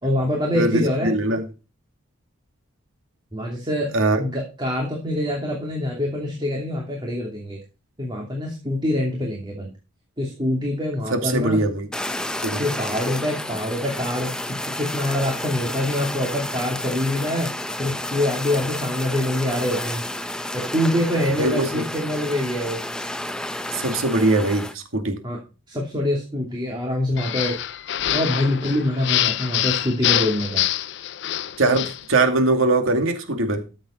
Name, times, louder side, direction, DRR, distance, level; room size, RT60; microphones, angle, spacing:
voice 1, 0.0-1.1 3.3-3.9 4.2-7.6 8.0-9.7 10.2-11.6 12.6-14.3 14.8-17.5 17.8-20.1 20.5-22.8 25.2-25.4 25.7-27.6 28.1-30.6, left 1 dB, 20° right, 2.8 m, -25 dB
voice 2, 0.5-1.4 3.9-4.2 11.1-11.9 12.4-12.8 21.4-21.9 23.7-25.2 31.6-33.6, right 2 dB, 80° right, 2.4 m, -21 dB
Fire, 11.9-24.7, left 1 dB, 5° left, 0.6 m, -31 dB
sound 1, 27.2-32.0, left 12 dB, 55° left, 0.4 m, -25 dB
13.5 x 7.8 x 4.4 m
head